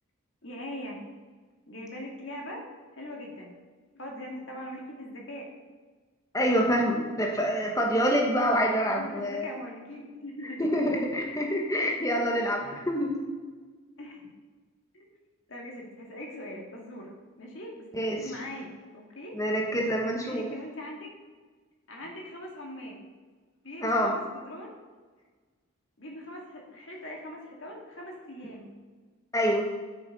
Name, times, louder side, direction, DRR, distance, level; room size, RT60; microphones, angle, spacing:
voice 1, 0.4-1.0 1.7-2.7 2.9-3.5 3.9-5.5 9.0-10.9 14.0-14.3 14.9-15.1 15.5-19.4 20.2-21.1 21.9-23.0 23.6-24.7 26.0-28.7, left 1 dB, 65° left, 0 dB, 2.1 m, -41 dB
voice 2, 6.3-9.5 10.6-13.2 17.9-18.3 19.3-20.5 23.8-24.2 29.3-29.7, equal, 15° left, 0 dB, 1.3 m, -26 dB
8.4 x 6.2 x 5.3 m, 1.4 s
head